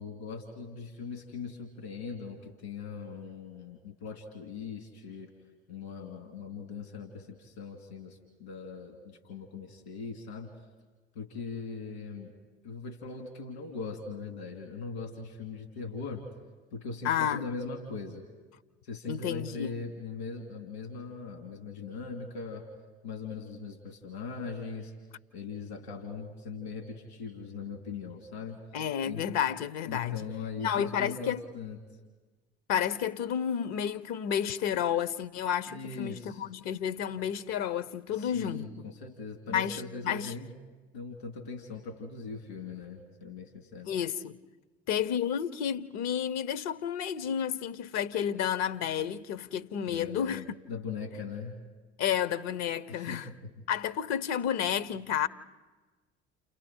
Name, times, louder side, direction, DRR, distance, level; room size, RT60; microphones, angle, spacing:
voice 1, 0.0-5.3 5.7-10.5 11.1-12.3 12.6-16.3 16.7-18.3 18.8-22.7 23.0-24.9 25.3-28.6 29.0-29.2 29.8-31.8 35.7-36.4 38.1-40.5 40.9-43.9 49.9-51.6 52.9-53.5, left 4 dB, 75° left, 2.8 m, -40 dB
voice 2, 17.0-17.5 19.1-19.7 28.7-30.2 30.6-31.4 32.7-38.7 39.5-40.3 43.9-44.4 44.9-50.4 52.0-53.3 53.7-55.3, left 9 dB, 55° left, 1.0 m, -31 dB
29.5 x 29.0 x 4.5 m
figure-of-eight pair, 60°, 32 cm